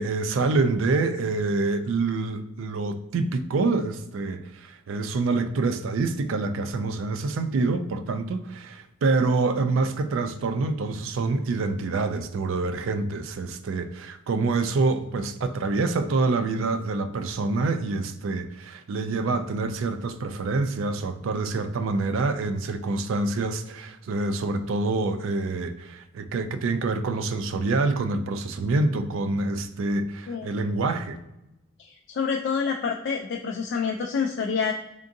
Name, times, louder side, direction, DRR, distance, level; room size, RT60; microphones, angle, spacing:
voice 1, 0.0-31.2, right 3 dB, 70° right, 0.4 m, -26 dB
voice 2, 31.8-34.7, left 6 dB, 60° left, 0.3 m, -27 dB
3.7 x 3.6 x 2.6 m
head